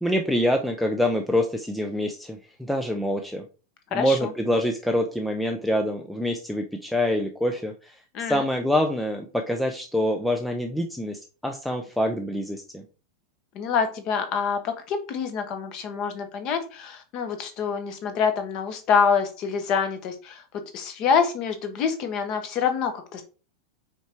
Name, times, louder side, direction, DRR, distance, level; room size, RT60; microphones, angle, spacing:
voice 1, 0.0-3.4 3.9-12.8, left 1 dB, ahead, 4 dB, 0.4 m, -26 dB
voice 2, 3.9-4.3 8.1-8.4 13.5-20.4 20.7-23.2, left 6 dB, 30° left, 7 dB, 1.0 m, -26 dB
5.7 x 4.6 x 4.4 m, 0.35 s
supercardioid pair, 180°, 2 cm